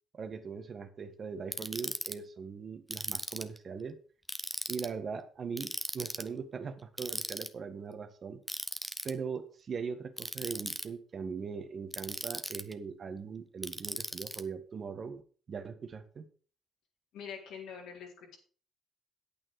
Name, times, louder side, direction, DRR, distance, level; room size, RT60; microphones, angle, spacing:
voice 1, 0.1-4.0 4.7-8.4 9.0-15.2 15.5-16.3, right 5 dB, 50° right, 9 dB, 1.4 m, -40 dB
Ratchet pawl, 1.5-2.1 2.9-3.6 4.3-4.9 5.6-6.3 7.0-7.5 8.5-9.1 10.2-10.9 11.9-12.7 13.6-14.4, equal, ahead, 0.9 m, -37 dB
voice 2, 17.1-18.4, left 7 dB, 80° left, -1 dB, 3.8 m, -44 dB
9.0 x 8.6 x 4.8 m, 0.41 s
supercardioid pair, 70°, 0 cm